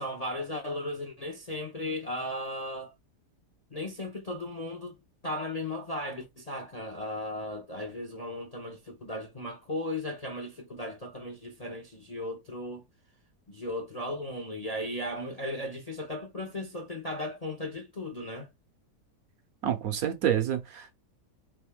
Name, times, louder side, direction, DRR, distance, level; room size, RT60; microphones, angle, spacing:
voice 1, 0.0-2.9 3.7-5.0 5.2-12.8 13.5-18.5, left 1 dB, 35° left, 0.6 m, -36 dB
voice 2, 19.6-20.9, right 10 dB, 65° right, 1.0 m, -28 dB
3.5 x 3.4 x 3.4 m
omnidirectional pair, 1.8 m